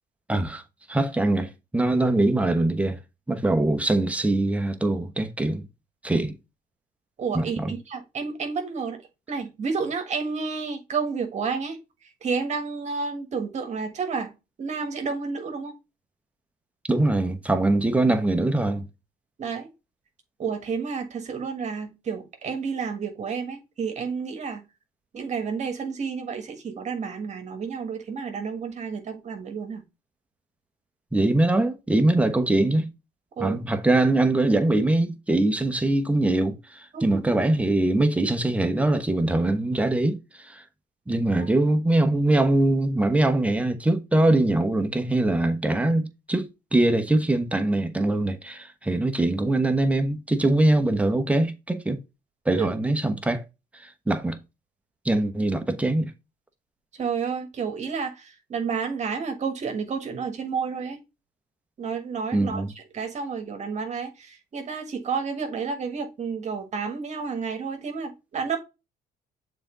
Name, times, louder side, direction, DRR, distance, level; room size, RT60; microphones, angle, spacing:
voice 1, 0.3-0.6 0.9-3.0 3.3-5.7 6.0-6.3 7.3-7.7 16.9-18.9 31.1-32.9 33.4-40.6 41.1-52.0 52.4-53.4 53.8-54.4 55.0-56.1 62.3-62.7, right 2 dB, 10° right, 1.0 m, -23 dB
voice 2, 7.2-9.0 9.3-11.8 12.2-14.3 14.6-15.7 19.4-19.7 20.4-24.6 25.1-29.8 33.4-33.6 36.9-37.2 52.6-52.7 57.0-61.0 61.8-62.6 62.9-68.6, right 5 dB, 45° right, 1.5 m, -30 dB
6.9 x 4.0 x 3.8 m
cardioid pair, 110°, 17 cm